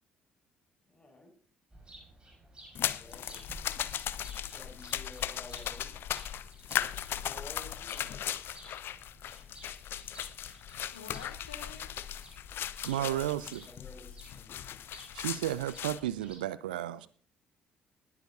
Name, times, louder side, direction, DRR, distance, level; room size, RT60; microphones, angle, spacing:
voice 1, 0.9-1.3 2.8-3.4 4.5-6.1 7.1-8.2 12.9-13.3 13.6-14.6, left 2 dB, 20° left, 5.3 m, -52 dB
sound 1, 1.7-16.4, right 1 dB, 20° right, 4.8 m, -55 dB
sound 2, 2.7-16.0, left 10 dB, 50° left, 0.5 m, -37 dB
voice 2, 10.9-12.0 12.4-12.7 15.0-15.4 16.2-16.4 16.8-17.0, left 6 dB, 75° left, 1.1 m, -51 dB
voice 3, 12.8-13.6 15.1-17.1, right 13 dB, 75° right, 0.5 m, -33 dB
19.5 x 11.0 x 2.7 m
figure-of-eight pair, 45°, 5 cm